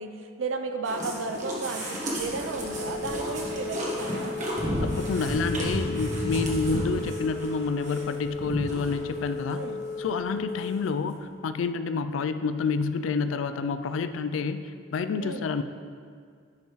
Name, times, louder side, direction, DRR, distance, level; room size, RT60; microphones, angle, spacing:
voice 1, 0.0-4.4 9.5-9.8 15.2-15.5, right 3 dB, 85° right, 7 dB, 0.5 m, -33 dB
sound 1, 0.8-9.2 9.5-9.6 10.1-10.2 10.4-10.5, equal, 40° right, 1.3 m, -33 dB
Telephone, 2.3-10.7, left 4 dB, 60° left, 1.0 m, -36 dB
voice 2, 4.8-9.6 10.0-15.6, left 4 dB, 85° left, 11 dB, 0.4 m, -29 dB
10.5 x 5.5 x 3.1 m, 2.1 s
head